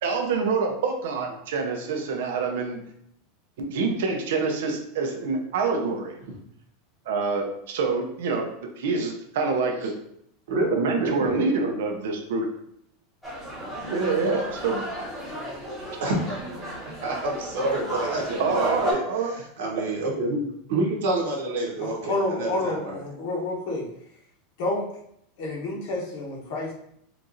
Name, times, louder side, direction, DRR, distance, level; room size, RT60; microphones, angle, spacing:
voice 1, 0.0-2.8 3.6-6.2 7.1-9.9 10.7-12.5 13.9-14.8 18.4-19.3, right 4 dB, 70° right, 3 dB, 0.7 m, -26 dB
voice 2, 10.5-11.4 16.0-16.4 17.0-23.0, right 2 dB, 90° right, -2 dB, 1.2 m, -28 dB
sound 1, 13.2-18.9, right 1 dB, ahead, 0.9 m, -33 dB
voice 3, 21.8-23.8 24.6-24.9 25.4-26.7, left 2 dB, 55° left, -2 dB, 1.0 m, -29 dB
4.5 x 2.5 x 2.6 m, 0.71 s
supercardioid pair, 180°, 0 cm